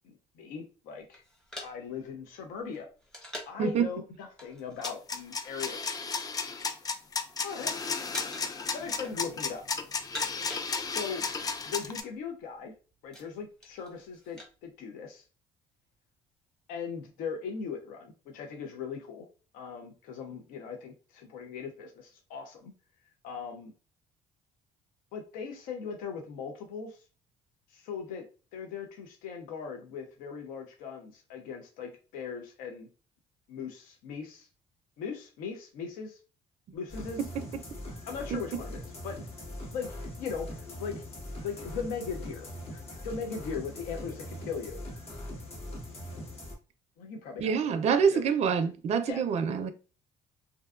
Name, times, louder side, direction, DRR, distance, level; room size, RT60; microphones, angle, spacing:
voice 1, 0.0-1.2 1.6-2.9 3.5-5.9 7.4-7.7 8.7-9.6 10.9-11.2 11.7-12.7 13.0-15.2 16.7-19.3 19.5-22.7 23.2-23.7 25.1-27.0 27.7-28.2 28.5-32.9 33.5-34.5 35.0-36.2 36.7-37.2 38.1-39.2 39.7-41.0 41.4-44.8 47.0-47.5 47.9-48.3 49.1-49.2, left 6 dB, 80° left, 0.5 m, -39 dB
sound 1, 1.1-3.7 4.4-5.0 5.2-5.5 6.1-6.9 7.2-7.7 8.1-8.6 8.9-9.5 9.9-11.2 11.4-11.5 11.7-12.1 12.6-14.5, left 1 dB, 5° left, 0.8 m, -45 dB
sound 2, 4.8-12.0, left 4 dB, 25° left, 0.3 m, -33 dB
sound 3, 36.9-46.6, left 1 dB, 45° left, 0.9 m, -41 dB
voice 2, 47.4-49.7, right 6 dB, 50° right, 0.4 m, -26 dB
2.5 x 2.2 x 2.3 m
supercardioid pair, 85°, 14 cm